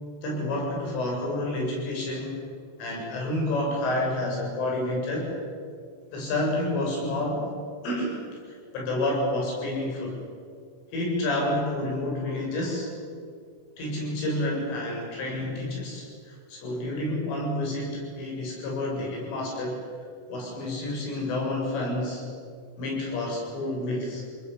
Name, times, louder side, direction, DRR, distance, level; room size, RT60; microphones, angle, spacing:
voice 1, 0.2-2.4 2.8-5.3 6.1-7.5 7.8-8.2 8.5-10.2 10.9-12.9 13.8-19.8 20.3-22.2 22.8-24.2, left 1 dB, 85° left, -1 dB, 9.8 m, -29 dB
29.5 x 19.5 x 8.3 m, 2.2 s
omnidirectional pair, 5.6 m